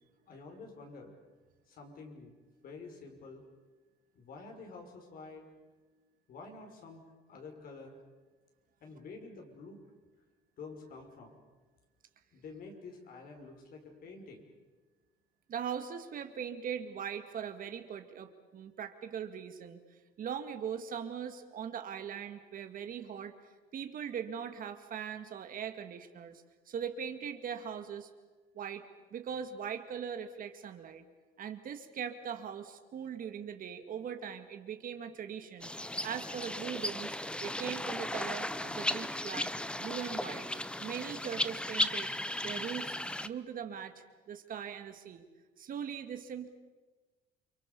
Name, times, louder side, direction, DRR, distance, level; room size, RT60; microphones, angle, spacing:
voice 1, 0.3-1.1 1.7-3.4 4.1-5.5 6.3-7.0 7.3-8.0 8.8-9.8 10.6-11.4 12.3-14.5, left 4 dB, 60° left, 3 dB, 5.9 m, -49 dB
voice 2, 15.5-19.8 20.2-23.3 23.7-28.1 28.6-31.0 31.4-35.7 36.0-39.5 39.8-40.5 40.8-42.1 42.4-43.0 43.2-45.2 45.6-46.5, right 8 dB, 55° right, 7 dB, 2.3 m, -40 dB
sound 1, 35.6-43.3, left 1 dB, 5° left, 0.9 m, -36 dB
29.5 x 24.5 x 7.1 m, 1.3 s
cardioid pair, 110°, 17 cm